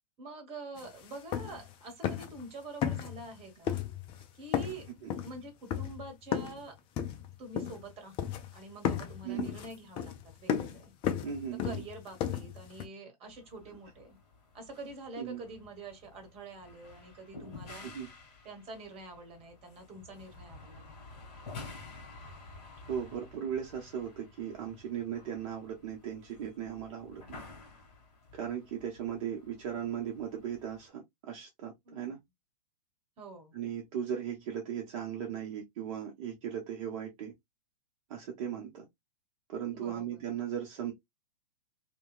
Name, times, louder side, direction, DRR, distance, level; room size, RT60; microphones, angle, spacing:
voice 1, 0.2-3.8 4.3-4.9 5.2-6.7 7.4-10.9 11.6-14.2 14.5-17.9 18.4-21.0 31.8-32.2 33.2-33.5 39.7-40.2, right 2 dB, 30° right, 1.1 m, -46 dB
sound 1, 0.8-0.9 1.1-1.7 2.0-2.4 2.8-3.4 3.7-4.2 4.5-6.6 7.0-7.9 8.2-8.6 8.8-12.9, left 9 dB, 25° left, 0.4 m, -34 dB
voice 2, 11.2-11.8 15.2-15.4 17.8-18.1 22.9-27.4 28.3-32.2 33.5-37.3 38.1-38.9 39.5-40.9, right 9 dB, 45° right, 0.8 m, -37 dB
sound 2, 13.3-30.9, left 3 dB, 45° left, 1.7 m, -52 dB
2.8 x 2.2 x 2.3 m
hypercardioid pair, 110°, 21 cm